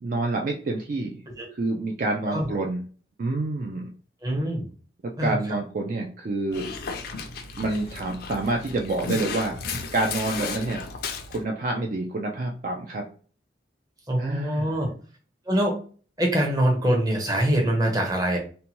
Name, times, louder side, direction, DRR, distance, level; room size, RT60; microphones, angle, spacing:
voice 1, 0.0-1.2 1.5-2.8 3.2-3.9 5.0-6.7 7.6-9.5 9.9-10.8 11.3-13.1 14.2-14.8, right 2 dB, 45° right, 1 dB, 0.3 m, -28 dB
voice 2, 4.2-4.6 5.2-5.4 14.1-14.9 15.5-15.8 16.2-18.4, right 1 dB, 20° right, 0 dB, 0.7 m, -23 dB
Dog, 6.5-11.4, left 4 dB, 55° left, 0.4 m, -34 dB
2.7 x 2.2 x 2.8 m, 0.40 s
head